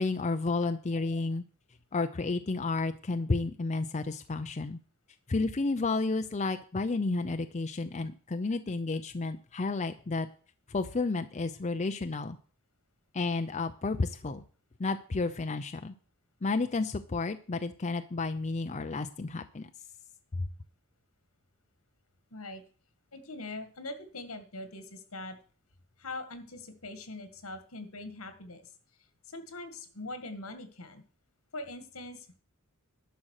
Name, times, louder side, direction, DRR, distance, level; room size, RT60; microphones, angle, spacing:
voice 1, 0.0-1.4 1.9-4.8 5.3-10.3 10.7-12.4 13.1-14.4 14.8-15.9 16.4-19.7, left 3 dB, 35° left, 8 dB, 0.5 m, -31 dB
voice 2, 22.3-22.6 23.1-25.4 26.0-28.7 29.3-31.0 31.5-32.4, left 2 dB, 80° left, 10 dB, 1.9 m, -42 dB
11.5 x 6.3 x 6.5 m, 0.42 s
head